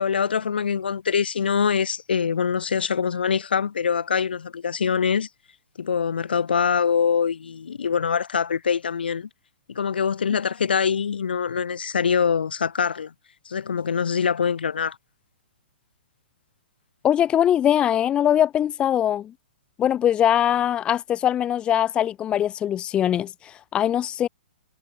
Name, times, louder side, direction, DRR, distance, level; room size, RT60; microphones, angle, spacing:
voice 1, 0.0-5.3 5.8-9.3 9.7-13.1 13.5-15.0, left 6 dB, 65° left, 2.1 m, -24 dB
voice 2, 17.0-19.3 19.8-24.3, left 10 dB, 15° left, 0.8 m, -22 dB
figure-of-eight pair, 120°, 6 cm